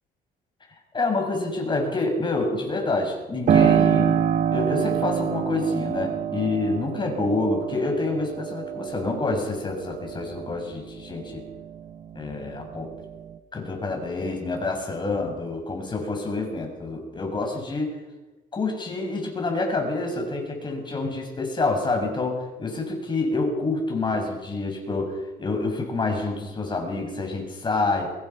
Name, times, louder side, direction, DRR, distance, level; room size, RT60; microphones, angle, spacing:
voice 1, 0.9-4.2 4.5-11.4 12.1-12.9 13.5-18.0 18.5-28.1, left 3 dB, 25° left, 3 dB, 6.9 m, -27 dB
Piano, 3.5-11.9 12.3-13.4, right 8 dB, 50° right, 1.3 m, -26 dB
24.0 x 21.5 x 5.9 m, 1.1 s
cardioid pair, 110°, 17 cm